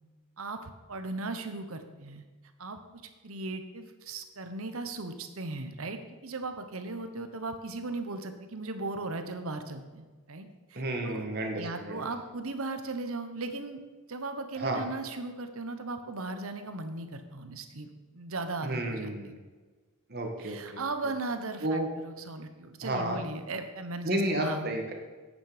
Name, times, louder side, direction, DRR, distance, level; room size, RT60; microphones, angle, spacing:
voice 1, 0.4-2.2 2.6-11.2 11.6-13.8 14.1-19.1 20.4-24.7, right 3 dB, 70° right, 8 dB, 1.1 m, -37 dB
voice 2, 10.8-12.1 14.6-14.8 18.6-19.4 20.1-20.8 21.6-21.9 22.8-23.2 24.0-24.9, right 1 dB, 45° right, 2 dB, 1.8 m, -31 dB
10.5 x 8.8 x 5.1 m, 1.4 s
head